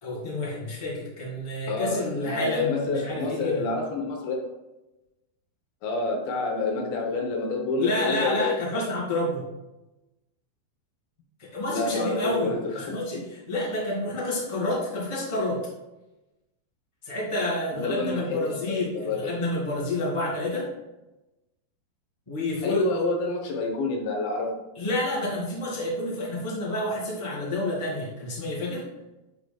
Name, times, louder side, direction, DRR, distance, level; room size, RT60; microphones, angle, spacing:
voice 1, 0.0-3.6 7.8-9.4 11.4-15.6 17.0-20.7 22.3-23.1 24.7-28.8, left 1 dB, 10° left, -6 dB, 1.7 m, -29 dB
voice 2, 1.7-4.4 5.8-8.5 11.7-13.0 17.7-19.4 22.6-24.6, left 3 dB, 75° left, 1 dB, 2.8 m, -28 dB
10.5 x 5.0 x 2.3 m, 0.98 s
omnidirectional pair, 4.3 m